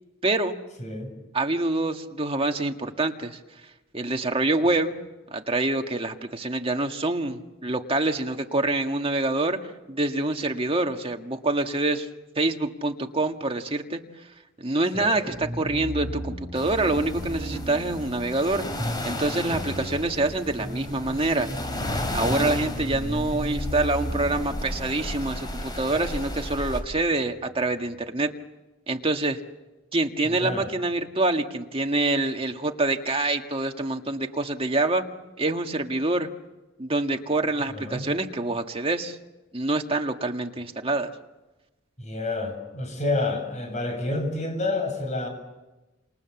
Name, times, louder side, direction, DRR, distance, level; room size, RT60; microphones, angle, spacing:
voice 1, 0.2-0.5 1.3-3.4 3.9-5.0 5.3-9.6 9.9-12.1 12.4-14.0 14.6-18.7 19.0-21.5 22.1-28.3 28.9-29.4 29.9-35.0 35.4-36.3 36.8-39.2 39.5-41.1, right 2 dB, 30° right, 4 dB, 1.8 m, -26 dB
voice 2, 0.8-1.1 14.9-15.2 30.2-30.7 37.7-38.0 42.0-45.3, left 2 dB, 35° left, 5 dB, 7.8 m, -29 dB
sound 1, 15.3-28.1, equal, 5° left, 7.3 m, -36 dB
sound 2, 16.6-26.8, left 1 dB, 20° left, 3.8 m, -34 dB
29.5 x 28.0 x 7.2 m, 1.1 s
head